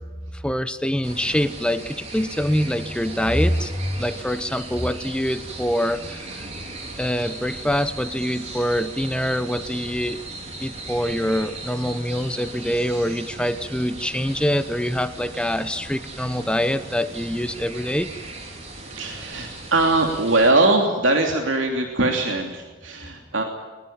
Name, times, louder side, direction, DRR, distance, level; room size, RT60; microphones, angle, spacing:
voice 1, 0.3-6.5 7.0-10.2 10.6-18.1, equal, 5° left, 11 dB, 0.8 m, -25 dB
sound 1, 1.0-20.5, right 2 dB, 35° right, 4.2 m, -38 dB
voice 2, 18.8-23.4, right 2 dB, 80° right, 2 dB, 3.0 m, -21 dB
21.5 x 21.0 x 8.8 m, 1.3 s
head